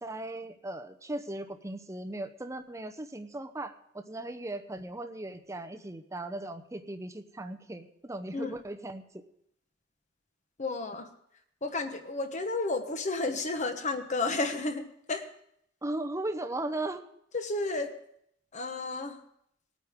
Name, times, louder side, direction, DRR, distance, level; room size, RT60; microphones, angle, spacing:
voice 1, 0.0-9.0 15.8-17.0, right 2 dB, 15° right, 6 dB, 0.7 m, -37 dB
voice 2, 10.6-11.1 11.6-14.8 15.1-15.2 17.3-17.9 18.5-19.2, left 3 dB, 40° left, 7 dB, 1.1 m, -32 dB
18.5 x 9.3 x 3.6 m, 0.71 s
head